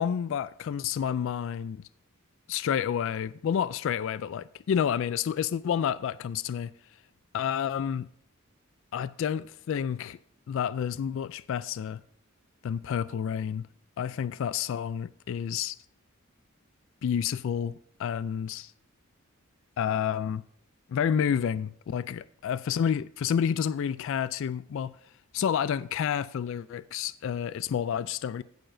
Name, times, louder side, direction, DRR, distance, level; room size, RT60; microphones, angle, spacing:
voice 1, 0.0-1.8 2.5-6.7 7.3-8.1 8.9-10.2 10.5-12.0 12.6-13.7 14.0-15.8 17.0-18.7 19.8-20.4 20.9-24.9 25.3-28.4, left 8 dB, 65° left, 0.3 m, -29 dB
16.0 x 6.8 x 2.6 m
head